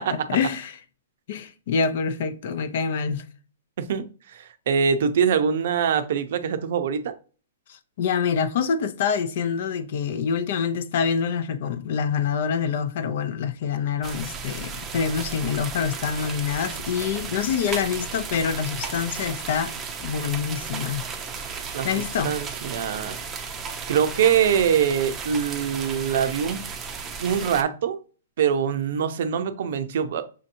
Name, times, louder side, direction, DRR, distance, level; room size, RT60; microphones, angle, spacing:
voice 1, 0.1-0.8 1.3-3.2 7.7-19.7 20.0-21.0 21.8-22.3, left 6 dB, 55° left, 0.5 m, -26 dB
voice 2, 3.8-7.1 21.7-21.9 22.2-23.2 23.9-26.6 27.2-28.0 28.4-30.3, right 7 dB, 60° right, 0.6 m, -23 dB
sound 1, 14.0-27.6, right 5 dB, 15° right, 0.6 m, -34 dB
6.3 x 2.8 x 2.5 m
hypercardioid pair, 150°, 0 cm